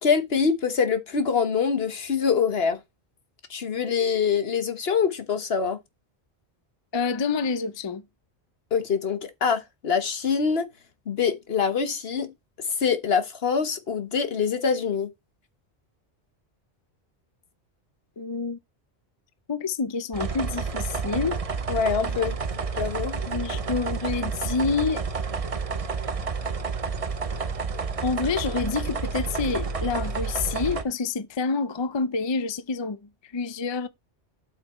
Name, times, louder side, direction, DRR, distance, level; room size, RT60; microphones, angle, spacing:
voice 1, 0.0-2.8 3.5-5.8 8.7-10.7 11.1-12.3 12.8-15.1 21.7-22.4 22.8-23.2, left 6 dB, 65° left, 1.4 m, -24 dB
voice 2, 6.9-8.0 18.2-18.6 19.5-21.4 23.3-25.1 28.0-33.9, left 4 dB, 30° left, 0.6 m, -28 dB
sound 1, 20.1-30.8, right 4 dB, 35° right, 0.8 m, -30 dB
8.2 x 5.8 x 4.2 m
omnidirectional pair, 1.1 m